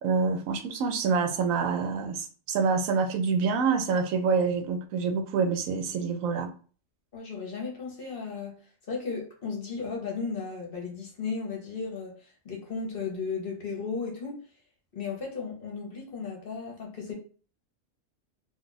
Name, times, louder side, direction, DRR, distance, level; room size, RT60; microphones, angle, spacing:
voice 1, 0.0-6.5, right 5 dB, 85° right, 1.0 m, -26 dB
voice 2, 7.1-8.5 8.9-14.4 14.9-17.1, left 5 dB, 50° left, 0.9 m, -35 dB
2.6 x 2.3 x 3.9 m
omnidirectional pair, 1.4 m